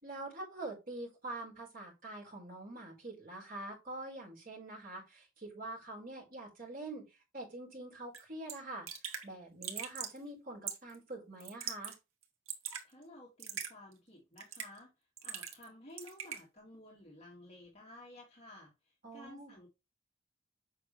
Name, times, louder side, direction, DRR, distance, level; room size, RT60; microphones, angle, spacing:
voice 1, 0.0-8.9 9.2-11.9 19.0-19.5, right 2 dB, 45° right, -2 dB, 4.6 m, -45 dB
Raindrop / Drip, 8.1-8.2 8.5-8.6 8.9-9.3 9.6-10.2 10.7-11.0 11.4-12.0 12.2-12.8 13.4-13.7 14.4-14.8 15.2-15.7 16.0-16.4, right 8 dB, 90° right, 2.1 m, -41 dB
voice 2, 12.8-14.9 15.2-18.7 19.1-19.7, left 1 dB, 30° left, -2 dB, 2.1 m, -54 dB
8.5 x 5.9 x 3.2 m, 0.25 s
head